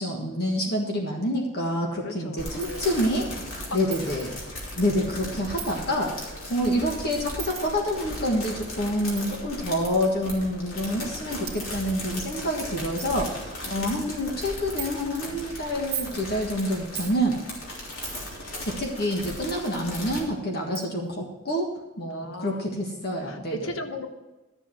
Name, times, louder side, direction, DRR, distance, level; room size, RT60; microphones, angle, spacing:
voice 1, 0.0-3.3 3.7-4.4 4.7-6.1 6.5-17.4 18.4-21.7 22.0-23.5, equal, 50° left, 0 dB, 1.6 m, -27 dB
voice 2, 2.0-2.8 3.7-4.1 13.6-14.1 22.1-22.8 23.2-24.1, left 1 dB, 70° left, 7 dB, 1.1 m, -38 dB
sound 1, 2.4-20.2, left 1 dB, 90° left, 3.4 m, -37 dB
Coin (dropping), 2.6-2.9 3.9-4.3 5.6-5.8 7.4-7.7 9.2-9.4 10.3-10.4 11.1-11.2 11.5-11.6 12.2-12.3 12.6-12.7 13.0-13.1 13.5-13.9 14.8-14.9 15.7-16.2 16.9-17.2 18.0-18.4 20.0-20.1 20.7-20.9, right 9 dB, 25° right, 1.6 m, -36 dB
12.5 x 7.6 x 4.6 m, 1.1 s
head